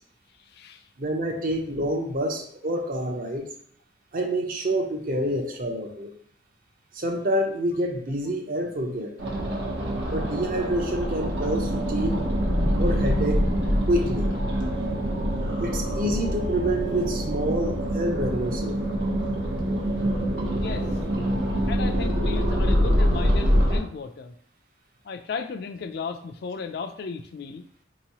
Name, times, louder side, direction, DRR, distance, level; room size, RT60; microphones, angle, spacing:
voice 1, 0.5-0.8 20.6-20.9 21.7-24.3 25.0-27.6, left 5 dB, 60° left, 8 dB, 0.4 m, -34 dB
voice 2, 1.0-3.5 4.1-6.1 6.9-9.2 10.1-12.2 12.8-13.5 13.9-14.3 15.6-18.8, right 1 dB, 50° right, 2 dB, 0.7 m, -27 dB
sound 1, 9.2-23.8, equal, 75° right, 1.0 m, -25 dB
4.5 x 2.9 x 2.9 m, 0.64 s
head